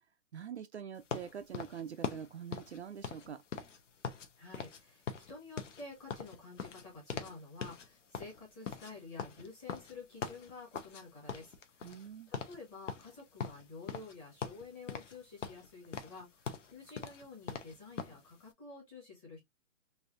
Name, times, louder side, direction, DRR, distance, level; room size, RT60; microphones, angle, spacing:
voice 1, 0.3-3.4 11.8-12.3, right 8 dB, 60° right, 0.5 m, -44 dB
sound 1, 1.1-4.3 4.5-4.8 5.1-7.4 7.6-7.9 8.1-11.0 11.3-12.1 12.3-12.6 12.9-14.1 14.4-15.2 15.4-18.2, left 6 dB, 65° left, 0.8 m, -41 dB
voice 2, 4.4-11.8 12.3-19.4, left 3 dB, 15° left, 1.1 m, -50 dB
3.3 x 2.7 x 2.5 m
hypercardioid pair, 165°, 40 cm